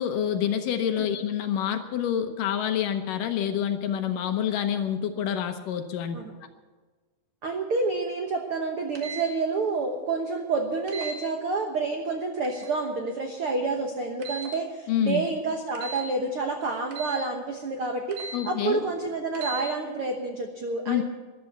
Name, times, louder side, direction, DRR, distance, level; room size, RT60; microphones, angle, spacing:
voice 1, 0.0-6.2 14.9-15.2 18.3-18.8 20.9-21.0, left 9 dB, 70° left, 7 dB, 2.3 m, -27 dB
voice 2, 7.4-18.2 18.4-21.0, right 3 dB, 80° right, 4 dB, 1.2 m, -29 dB
sound 1, 9.0-9.3 10.9-11.2 12.4-12.8 14.2-14.6 15.8-16.1 16.9-17.2 18.1-18.4 19.3-19.6, right 4 dB, 65° right, 3.0 m, -37 dB
14.0 x 11.5 x 7.8 m, 1.4 s
omnidirectional pair, 4.4 m